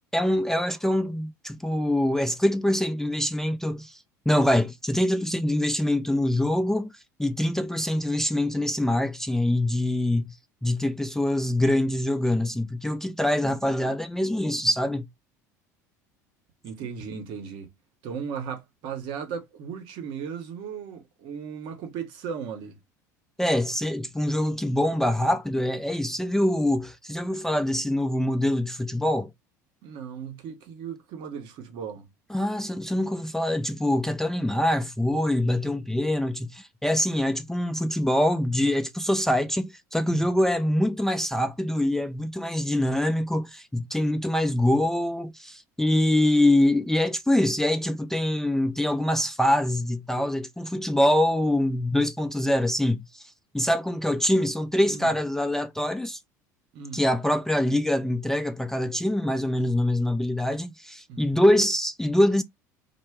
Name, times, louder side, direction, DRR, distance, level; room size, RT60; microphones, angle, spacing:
voice 1, 0.1-10.4 10.6-15.1 23.4-29.3 32.3-56.2 56.9-62.4, left 1 dB, 5° left, 0.3 m, -24 dB
voice 2, 16.6-17.7 18.0-22.8 29.8-32.1 40.1-40.3 54.9-55.1 56.7-57.0 61.1-61.3, right 7 dB, 60° right, 0.8 m, -36 dB
2.0 x 2.0 x 3.4 m
hypercardioid pair, 75°, 9 cm